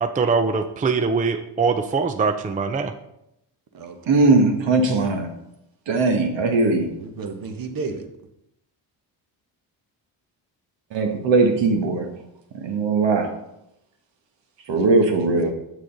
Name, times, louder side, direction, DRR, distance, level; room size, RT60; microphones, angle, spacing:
voice 1, 0.0-2.9, right 4 dB, 15° right, 8 dB, 0.5 m, -22 dB
voice 2, 4.1-5.3 5.9-6.9 10.9-12.1 12.5-13.3 14.7-15.5, right 3 dB, 65° right, 4 dB, 1.4 m, -19 dB
voice 3, 7.0-8.1 14.7-15.5, right 4 dB, 45° right, 7 dB, 1.2 m, -33 dB
7.1 x 6.5 x 3.9 m, 0.83 s
supercardioid pair, 70°, 48 cm